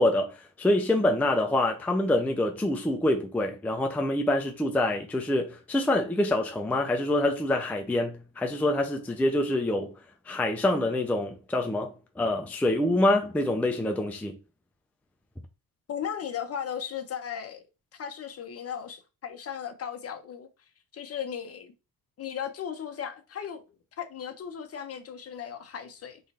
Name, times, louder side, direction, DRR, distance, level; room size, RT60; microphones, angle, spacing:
voice 1, 0.0-9.9 10.3-14.4, left 1 dB, 5° left, 0.4 m, -26 dB
voice 2, 15.9-17.6 17.9-20.5 20.9-21.7 22.2-23.6 24.0-26.2, left 8 dB, 40° left, 0.9 m, -36 dB
3.8 x 3.1 x 4.1 m
cardioid pair, 115°, 38 cm